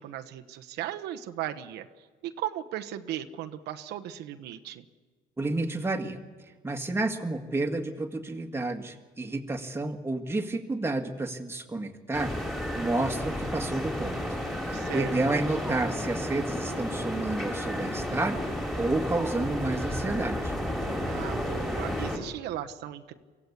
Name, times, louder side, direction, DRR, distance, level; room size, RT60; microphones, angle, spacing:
voice 1, 0.0-1.9 2.2-4.8 14.7-15.2 21.0-23.1, right 12 dB, 85° right, 6 dB, 1.1 m, -37 dB
voice 2, 5.4-6.2 6.6-12.3 12.7-14.2 14.6-18.4 18.8-20.6, right 2 dB, 15° right, 4 dB, 1.9 m, -30 dB
sound 1, 12.1-22.2, equal, ahead, 3.6 m, -32 dB
24.5 x 16.0 x 8.3 m, 1.4 s
cardioid pair, 110°, 17 cm